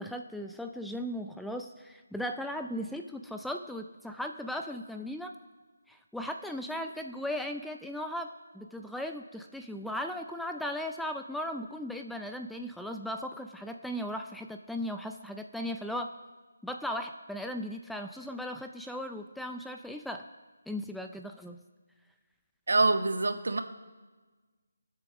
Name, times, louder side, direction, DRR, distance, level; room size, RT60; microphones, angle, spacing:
voice 1, 0.0-5.3 5.9-16.1 16.6-20.3 20.7-21.6, equal, ahead, 4 dB, 0.4 m, -37 dB
voice 2, 22.7-23.6, right 3 dB, 75° right, 7 dB, 1.4 m, -25 dB
23.0 x 7.8 x 6.1 m, 1.3 s
hypercardioid pair, 170°, 0 cm